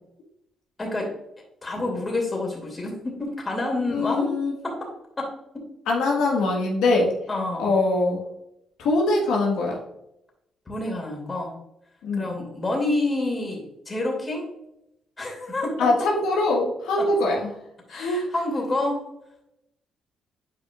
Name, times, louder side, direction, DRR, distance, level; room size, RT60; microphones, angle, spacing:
voice 1, 0.8-1.1 1.6-4.3 4.6-4.9 5.2-5.6 7.3-7.7 10.7-11.5 12.2-14.5 15.2-15.9 17.0-17.1 17.9-19.1, left 2 dB, 25° left, -1 dB, 2.6 m, -28 dB
voice 2, 3.9-4.5 5.9-7.1 7.6-8.2 8.8-9.8 12.0-12.3 15.8-17.5 17.9-18.2, left 2 dB, 90° left, -2 dB, 1.5 m, -22 dB
8.8 x 4.9 x 2.4 m, 0.82 s
cardioid pair, 90°, 0 cm